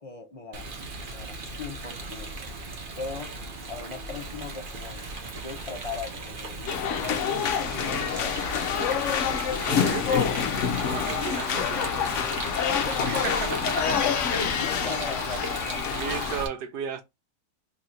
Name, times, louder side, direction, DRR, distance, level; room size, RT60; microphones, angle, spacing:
voice 1, 0.0-2.5 3.0-3.4 3.7-9.2 12.6-14.0 14.6-16.0, left 3 dB, 40° left, 0.5 m, -39 dB
Rain, 0.5-16.5, right 3 dB, 50° right, 0.6 m, -37 dB
sound 1, 6.7-16.4, left 8 dB, 65° left, 0.8 m, -27 dB
voice 2, 9.7-10.4 10.9-12.1 13.1-13.8 15.3-15.4 15.9-17.0, right 8 dB, 80° right, 1.2 m, -34 dB
3.1 x 2.6 x 4.3 m
omnidirectional pair, 1.7 m